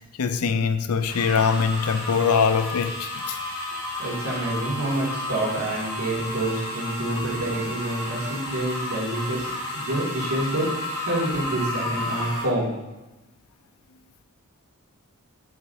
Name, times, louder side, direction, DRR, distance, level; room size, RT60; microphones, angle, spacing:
voice 1, 0.0-3.4, left 5 dB, 90° left, 0.5 m, -23 dB
sound 1, 1.1-12.4, left 1 dB, 20° left, 2.5 m, -32 dB
voice 2, 4.0-9.5 9.7-12.8, right 1 dB, 80° right, 2.5 m, -27 dB
7.8 x 7.1 x 2.8 m
head